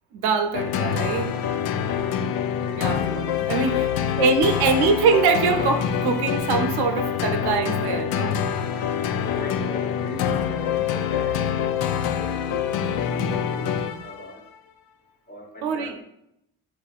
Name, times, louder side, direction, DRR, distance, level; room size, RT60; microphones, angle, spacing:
voice 1, 0.1-1.3 2.8-3.9 4.2-8.4 15.6-16.0, right 5 dB, 80° right, 6 dB, 0.6 m, -23 dB
sound 1, 0.5-14.3, left 8 dB, 70° left, 0.5 m, -25 dB
voice 2, 2.7-4.1 8.7-14.4 15.3-16.0, left 1 dB, 25° left, 0 dB, 1.2 m, -40 dB
5.5 x 3.3 x 2.4 m, 0.78 s
supercardioid pair, 70°, 39 cm